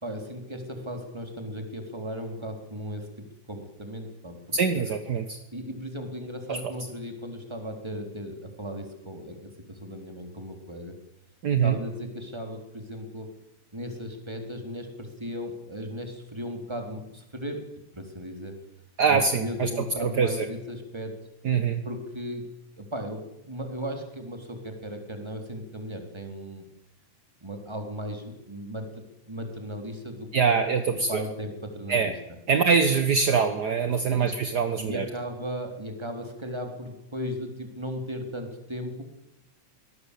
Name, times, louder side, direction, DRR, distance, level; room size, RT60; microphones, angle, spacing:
voice 1, 0.0-3.1 3.5-4.9 5.5-10.9 11.6-13.3 13.7-17.7 17.9-18.6 19.1-21.2 21.8-22.5 22.8-26.7 27.4-30.6 30.9-32.1 34.1-34.4 34.8-39.0, equal, 10° right, 4 dB, 3.5 m, -36 dB
voice 2, 4.5-5.4 6.5-6.6 11.4-11.7 19.0-19.7 20.0-20.5 21.4-21.8 30.3-31.2 31.9-32.1 32.5-35.1, right 6 dB, 50° right, 8 dB, 1.2 m, -23 dB
23.0 x 18.5 x 8.4 m, 0.89 s
omnidirectional pair, 3.4 m